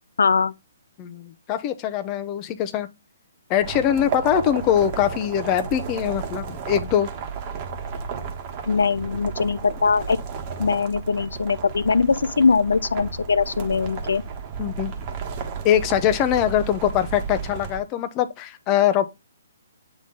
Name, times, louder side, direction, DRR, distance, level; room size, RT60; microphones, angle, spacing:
voice 1, 0.2-0.5 8.7-10.2 10.6-14.2, left 5 dB, 75° left, 0.4 m, -21 dB
voice 2, 1.0-2.9 3.5-7.1 14.6-14.9 15.6-19.1, left 10 dB, 25° left, 0.7 m, -22 dB
sound 1, 3.6-17.8, right 5 dB, 35° right, 1.4 m, -33 dB
8.3 x 3.7 x 3.9 m
hypercardioid pair, 140°, 0 cm